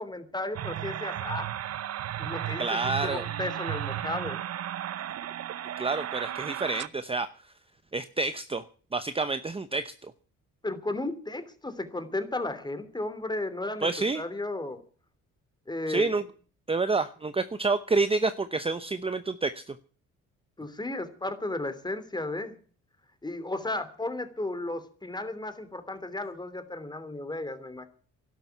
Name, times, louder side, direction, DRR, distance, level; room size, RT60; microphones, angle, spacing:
voice 1, 0.0-1.5 2.2-4.4 10.6-13.9 14.1-14.8 15.7-16.3 20.6-22.6 23.2-27.9, left 2 dB, 15° left, 11 dB, 2.9 m, -34 dB
sound 1, 0.5-6.9, right 11 dB, 55° right, 0.7 m, -34 dB
voice 2, 2.6-3.2 5.8-7.3 7.9-8.6 8.9-10.1 13.8-14.2 15.9-16.2 16.7-19.7, right 3 dB, 20° right, 11 dB, 0.8 m, -28 dB
12.0 x 12.0 x 9.3 m, 0.43 s
cardioid pair, 90°, 30 cm